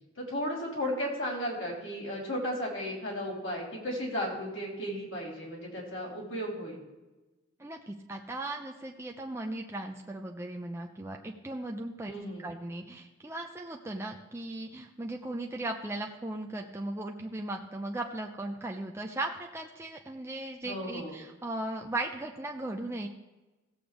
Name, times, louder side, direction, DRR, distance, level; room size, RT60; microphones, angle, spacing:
voice 1, 0.2-6.8 12.1-12.5 20.6-21.2, equal, 85° left, -3 dB, 3.7 m, -35 dB
voice 2, 7.6-12.1 12.4-23.1, right 2 dB, 15° right, 1 dB, 0.5 m, -37 dB
16.5 x 7.5 x 3.4 m, 1.1 s
head